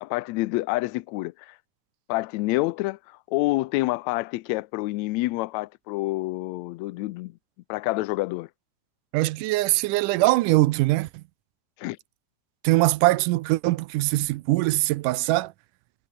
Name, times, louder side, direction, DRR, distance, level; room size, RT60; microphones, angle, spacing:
voice 1, 0.0-1.6 2.1-7.3 7.7-8.5 11.8-12.0, left 20 dB, 85° left, 1.6 m, -28 dB
voice 2, 9.1-11.2 12.6-15.5, right 19 dB, 85° right, 2.1 m, -22 dB
omnidirectional pair, 3.8 m